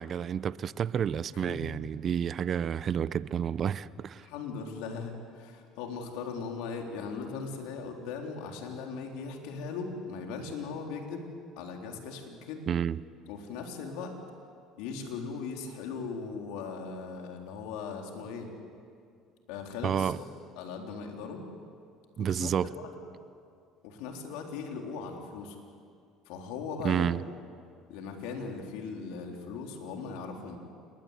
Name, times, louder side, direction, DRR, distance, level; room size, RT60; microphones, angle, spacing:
voice 1, 0.0-4.2 12.7-13.0 19.8-20.2 22.2-22.7 26.8-27.2, right 8 dB, 45° right, 18 dB, 0.7 m, -30 dB
voice 2, 1.3-1.8 4.2-11.3 11.6-12.6 13.3-14.2 14.8-18.5 19.5-20.2 20.6-21.4 22.2-22.9 23.8-25.6 26.3-27.1 27.9-30.6, left 5 dB, 80° left, 2 dB, 3.9 m, -39 dB
28.0 x 21.5 x 8.3 m, 2.3 s
supercardioid pair, 85°, 0 cm